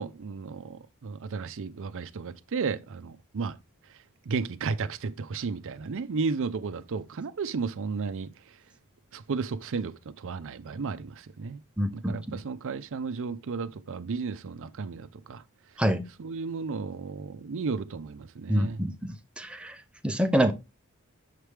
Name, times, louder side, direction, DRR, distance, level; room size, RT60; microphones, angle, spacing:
voice 1, 0.0-3.6 4.3-8.3 9.1-11.6 11.9-15.4 16.2-18.8, right 4 dB, 60° right, 0.5 m, -33 dB
voice 2, 11.8-12.4 15.8-16.0 18.5-19.7 20.0-20.5, equal, 5° right, 0.6 m, -26 dB
6.6 x 4.7 x 3.4 m
head